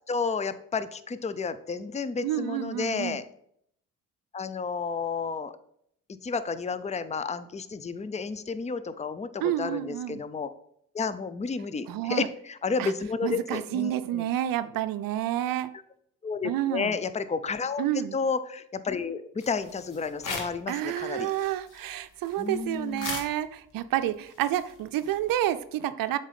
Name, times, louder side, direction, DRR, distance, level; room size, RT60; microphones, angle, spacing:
voice 1, 0.1-3.2 4.3-5.5 6.2-10.5 10.9-14.3 16.2-17.8 18.1-21.3 22.4-23.2, left 5 dB, 20° left, 13 dB, 0.6 m, -31 dB
voice 2, 2.2-3.2 9.4-10.2 11.9-12.3 12.8-12.9 13.2-15.7 16.4-17.0 17.8-18.2 20.7-26.2, right 12 dB, 60° right, 13 dB, 0.6 m, -29 dB
sound 1, 19.4-20.7 21.0-25.6, left 3 dB, 55° left, 1.9 m, -41 dB
7.3 x 4.0 x 5.1 m, 0.69 s
hypercardioid pair, 50°, 38 cm